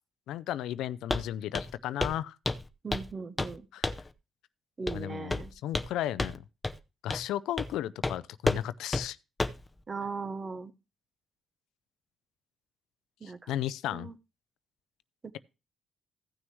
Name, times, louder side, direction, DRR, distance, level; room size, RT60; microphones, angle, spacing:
voice 1, 0.3-2.4 3.7-3.9 4.9-6.4 7.0-9.2 13.2-14.1, left 12 dB, 85° left, 0.4 m, -34 dB
Walk footsteps, 1.1-1.3 1.5-1.7 2.0-2.2 2.5-3.1 3.4-3.6 3.8-4.1 4.9-5.0 5.3-5.9 6.2-6.4 6.6-6.8 7.1-7.3 7.6-7.7 8.0-8.2 8.5-8.6 8.9-9.0 9.4-9.6, left 2 dB, 15° left, 0.7 m, -31 dB
voice 2, 2.8-3.7 4.8-5.5 9.9-10.7 13.2-13.5 13.9-14.2 15.2-15.4, right 4 dB, 35° right, 0.9 m, -38 dB
15.5 x 6.3 x 3.1 m
cardioid pair, 90°, 0 cm